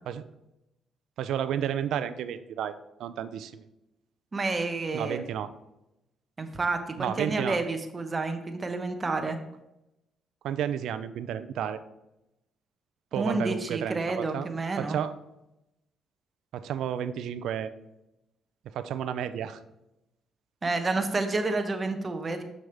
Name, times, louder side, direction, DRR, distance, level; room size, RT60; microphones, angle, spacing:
voice 1, 1.2-3.6 4.9-5.5 7.0-7.6 10.4-11.8 13.1-14.5 14.8-15.1 16.5-17.7 18.7-19.6, right 9 dB, 80° right, 12 dB, 0.5 m, -32 dB
voice 2, 4.3-5.2 6.4-9.4 13.2-15.0 20.6-22.4, right 3 dB, 30° right, 7 dB, 0.9 m, -29 dB
6.7 x 6.3 x 3.4 m, 0.90 s
cardioid pair, 90°, 0 cm